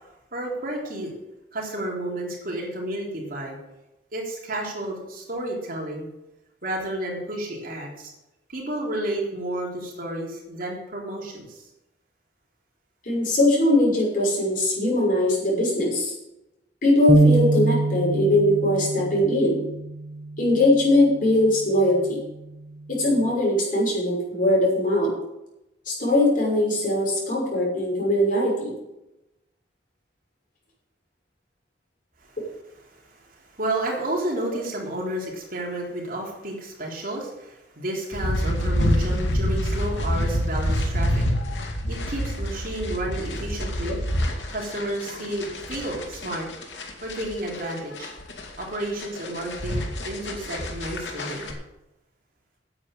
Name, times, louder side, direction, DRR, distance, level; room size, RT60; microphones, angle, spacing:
voice 1, 0.3-1.1 1.5-3.6 4.1-6.1 6.6-8.1 8.5-11.6 32.2-32.3 32.9-41.2 41.9-44.0 44.5-46.5 47.0-48.1 48.6-51.5, right 1 dB, 55° right, -2 dB, 3.6 m, -31 dB
voice 2, 13.0-16.1 16.8-19.6 20.4-22.2 22.9-25.1 25.9-28.7 32.4-32.5, left 1 dB, 50° left, -4 dB, 6.2 m, -21 dB
sound 1, 17.1-23.3, right 2 dB, 10° right, 1.3 m, -26 dB
sound 2, 38.1-51.5, equal, 85° left, 2.4 m, -27 dB
9.6 x 8.2 x 8.7 m, 0.92 s
head